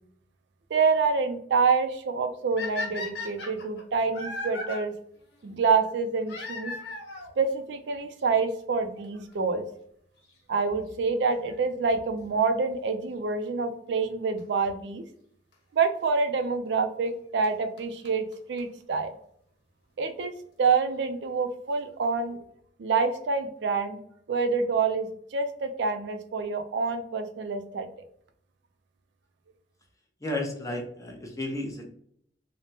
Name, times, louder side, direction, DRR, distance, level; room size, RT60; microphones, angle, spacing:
voice 1, 0.7-4.9 5.4-6.7 7.4-9.6 10.5-15.0 15.7-19.1 20.0-20.3 20.6-22.4 22.8-24.0 24.3-27.9, right 4 dB, 70° right, 7 dB, 0.4 m, -27 dB
sound 1, 2.6-4.8 6.3-7.3 8.2-8.3 9.0-9.1 9.3-9.4 11.3-11.6 14.4-14.5 15.5-15.6 17.1-17.2 17.4-17.5 17.8-17.9 18.0-18.1 18.3-18.4 18.6-18.7 18.9-19.0, left 3 dB, 75° left, 1.1 m, -36 dB
voice 2, 30.2-31.9, left 1 dB, 20° left, 1 dB, 0.7 m, -33 dB
3.3 x 2.1 x 2.7 m, 0.66 s
head